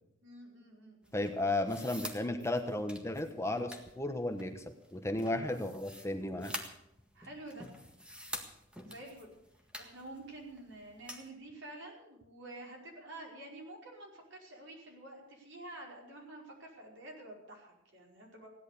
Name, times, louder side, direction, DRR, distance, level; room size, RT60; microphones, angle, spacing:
voice 1, 0.2-1.2 5.2-5.6 7.1-7.7 8.8-9.3 9.8-18.5, right 1 dB, 70° right, -1 dB, 5.1 m, -49 dB
sound 1, 1.0-11.3, equal, 5° right, 1.7 m, -48 dB
voice 2, 1.1-6.5, left 2 dB, 15° left, 6 dB, 1.1 m, -34 dB
16.5 x 11.0 x 6.8 m, 0.81 s
head